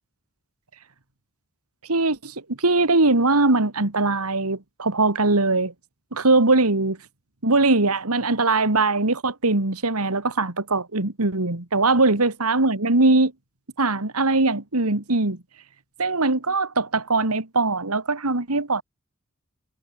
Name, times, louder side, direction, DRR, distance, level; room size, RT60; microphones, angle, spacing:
voice 1, 1.9-5.7 6.1-7.0 7.4-13.3 13.8-15.4 16.0-18.8, right 3 dB, 85° right, 2.4 m, -21 dB
head